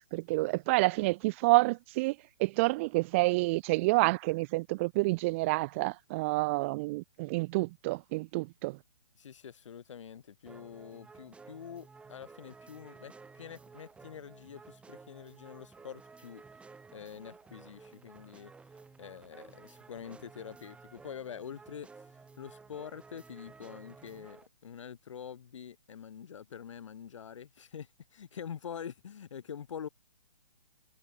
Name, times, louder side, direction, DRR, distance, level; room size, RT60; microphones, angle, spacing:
voice 1, 0.1-8.8, right 23 dB, 25° right, 0.6 m, -28 dB
voice 2, 9.1-16.4 16.9-18.5 19.0-22.1 22.4-29.9, left 8 dB, 60° left, 7.6 m, -45 dB
sound 1, 10.5-24.5, right 4 dB, 5° right, 5.0 m, -54 dB
hypercardioid pair, 150°, 18 cm